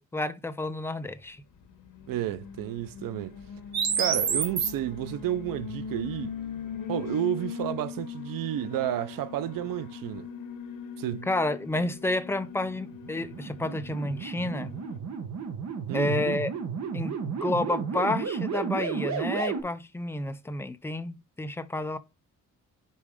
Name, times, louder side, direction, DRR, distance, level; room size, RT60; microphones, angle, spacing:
voice 1, 0.0-1.4 11.3-14.7 15.9-16.5 16.9-22.0, left 2 dB, 10° left, 0.4 m, -30 dB
Alarm, 1.5-15.0, left 7 dB, 80° left, 1.3 m, -41 dB
voice 2, 2.1-3.4 4.0-6.3 6.9-10.3 11.0-11.3 15.9-16.3, right 12 dB, 85° right, 0.6 m, -31 dB
sound 1, 3.7-4.7 12.8-19.6, right 6 dB, 55° right, 1.2 m, -31 dB
5.4 x 4.6 x 4.9 m
wide cardioid pair, 155°, 32 cm